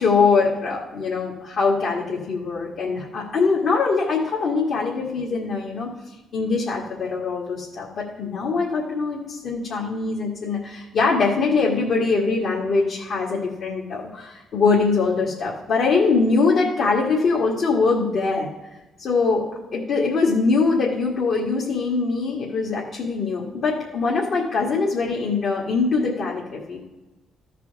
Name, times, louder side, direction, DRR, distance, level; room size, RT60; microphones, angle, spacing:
voice 1, 0.0-5.9 6.3-18.5 19.0-19.5 19.7-26.8, left 4 dB, 65° left, -3 dB, 1.8 m, -22 dB
14.0 x 4.8 x 4.7 m, 1.1 s
cardioid pair, 90°, 0 cm